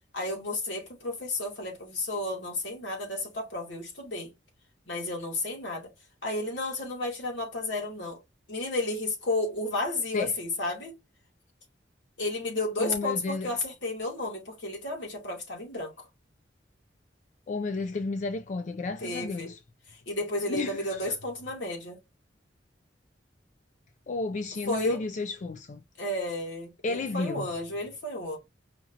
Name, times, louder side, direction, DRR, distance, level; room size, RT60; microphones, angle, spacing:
voice 1, 0.1-4.3 4.9-5.9 6.2-8.2 8.5-11.0 12.2-15.9 19.0-19.5 20.1-22.0 24.7-25.0 26.0-28.4, left 2 dB, 80° left, 2.3 m, -32 dB
voice 2, 12.8-13.5 17.5-19.6 20.5-21.1 24.1-25.8 26.8-27.5, left 3 dB, 40° left, 0.4 m, -32 dB
5.0 x 2.8 x 3.8 m
head